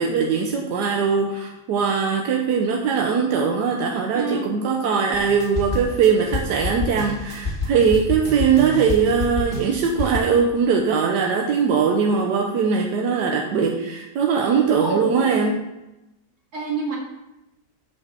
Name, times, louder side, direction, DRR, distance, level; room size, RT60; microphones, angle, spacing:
voice 1, 0.0-15.5, right 6 dB, 90° right, 1 dB, 1.4 m, -21 dB
voice 2, 4.1-4.5 14.8-15.4 16.5-17.0, right 3 dB, 65° right, -1 dB, 2.2 m, -27 dB
sound 1, 5.1-10.2, left 2 dB, 35° left, 1.6 m, -28 dB
7.4 x 4.6 x 6.1 m, 0.95 s
omnidirectional pair, 1.8 m